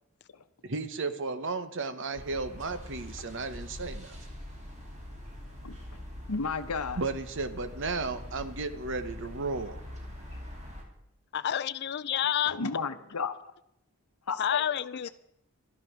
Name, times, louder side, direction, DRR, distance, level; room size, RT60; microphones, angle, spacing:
voice 1, 0.6-4.2 7.0-9.8, right 3 dB, 55° right, 1.0 m, -34 dB
sound 1, 2.1-10.8, left 1 dB, 30° right, 2.8 m, -43 dB
voice 2, 6.3-7.0 12.5-13.4 14.3-14.6 15.0-15.1, left 4 dB, 80° left, 0.9 m, -32 dB
voice 3, 11.3-12.6 14.4-15.1, left 9 dB, 50° left, 0.4 m, -29 dB
12.5 x 11.0 x 6.1 m
head